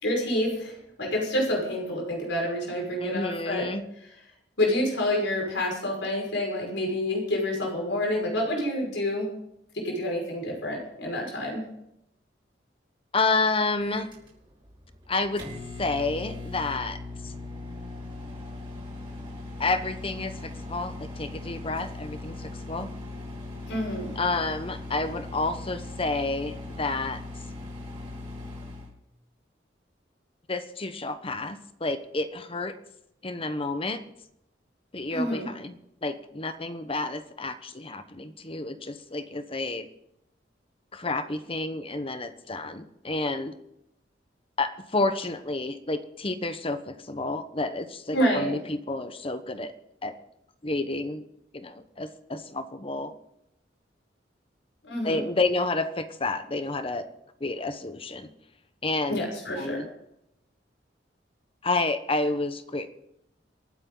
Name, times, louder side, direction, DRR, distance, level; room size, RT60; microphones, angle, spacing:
voice 1, 0.0-3.7 4.6-9.3 9.8-11.6 23.7-24.1 35.1-35.5 48.1-48.5 54.9-55.2 59.1-59.8, left 1 dB, 90° left, 0 dB, 5.6 m, -28 dB
voice 2, 3.0-3.9 13.1-14.1 15.1-15.4 15.8-17.3 19.6-22.9 24.2-27.2 30.5-32.7 33.2-34.0 34.9-39.9 40.9-43.5 44.6-49.7 50.0-50.1 50.6-51.2 51.5-53.1 55.0-57.0 57.4-58.3 58.8-59.3 59.6-59.9 61.6-62.9, left 3 dB, 30° left, 10 dB, 1.1 m, -30 dB
Microwave oven, 13.8-28.9, left 2 dB, 30° right, 5.7 m, -39 dB
27.0 x 9.1 x 4.0 m, 0.80 s
head